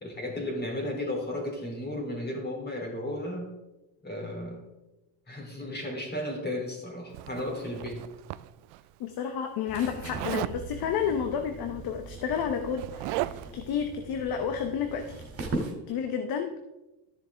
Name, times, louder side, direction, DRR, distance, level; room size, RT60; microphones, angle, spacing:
voice 1, 0.0-3.5 4.0-4.6 5.3-8.1, left 1 dB, 20° left, 1 dB, 3.0 m, -34 dB
Zipper (clothing), 7.1-8.8 10.1-10.6 11.8-11.9 12.2-13.6, right 17 dB, 60° right, 0.5 m, -36 dB
voice 2, 9.0-15.1 15.5-15.6 15.9-16.6, left 7 dB, 50° left, 6 dB, 1.0 m, -31 dB
sound 1, 9.7-15.7, right 2 dB, 30° right, 2.6 m, -39 dB
13.0 x 6.8 x 3.5 m, 1.0 s
supercardioid pair, 115°, 48 cm